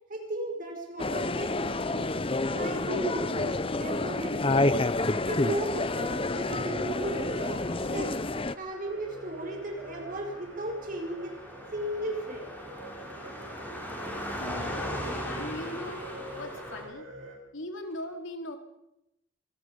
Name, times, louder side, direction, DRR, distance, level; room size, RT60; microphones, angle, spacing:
voice 1, 0.1-2.0 2.5-4.8 5.2-8.1 8.5-11.3 11.7-12.5, right 1 dB, 45° right, 2 dB, 5.7 m, -35 dB
sound 1, 1.0-8.5, left 2 dB, 30° left, 0.8 m, -29 dB
Car passing by, 6.9-16.8, equal, 10° left, 5.4 m, -40 dB
sound 2, 8.8-17.4, equal, 85° right, 6.0 m, -47 dB
voice 2, 14.4-17.1 17.5-18.6, left 1 dB, 85° left, 5 dB, 3.0 m, -40 dB
26.0 x 19.0 x 5.4 m, 0.86 s
head